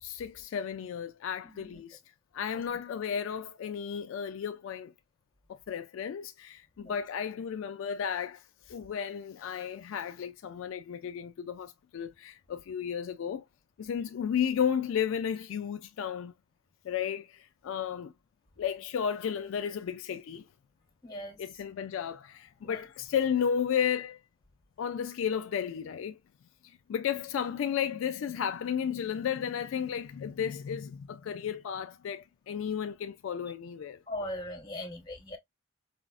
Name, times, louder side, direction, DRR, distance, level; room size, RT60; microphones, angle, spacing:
voice 1, 0.0-2.0 2.3-4.9 5.5-13.4 13.8-16.3 16.8-18.1 18.6-20.5 21.4-24.2 24.8-26.2 26.6-34.0, left 8 dB, 70° left, 0.3 m, -33 dB
voice 2, 1.4-1.8 2.5-2.6 6.8-7.0 21.0-21.4 22.6-22.8 34.1-35.4, left 1 dB, 20° left, 1.1 m, -40 dB
4.9 x 2.0 x 2.4 m
head